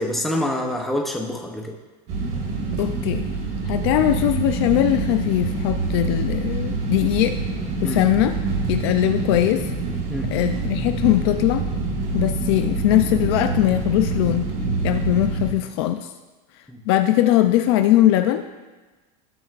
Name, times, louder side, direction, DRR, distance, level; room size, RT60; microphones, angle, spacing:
voice 1, 0.0-1.8 7.8-8.0 10.1-10.3 16.7-16.8, left 1 dB, ahead, 1 dB, 0.7 m, -26 dB
sound 1, 2.1-15.5, right 3 dB, 35° right, 1.6 m, -26 dB
voice 2, 2.8-3.2 3.7-7.4 7.8-8.4 8.7-9.7 10.3-11.7 12.1-14.5 14.8-16.1 16.9-18.5, left 13 dB, 40° left, 8 dB, 0.4 m, -20 dB
18.5 x 7.8 x 2.4 m, 1.2 s
supercardioid pair, 175°, 21 cm